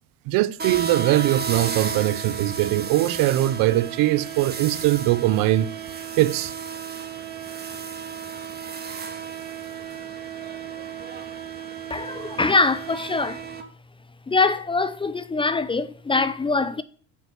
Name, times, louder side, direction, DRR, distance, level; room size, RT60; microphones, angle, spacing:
voice 1, 0.3-5.7 6.2-6.5, right 15 dB, 65° right, 0.8 m, -21 dB
sound 1, 0.6-13.6, right 6 dB, 25° right, 1.8 m, -33 dB
voice 2, 11.9-13.4 14.3-16.8, left 3 dB, 15° left, 0.6 m, -23 dB
9.2 x 7.2 x 7.0 m
cardioid pair, 135°, 36 cm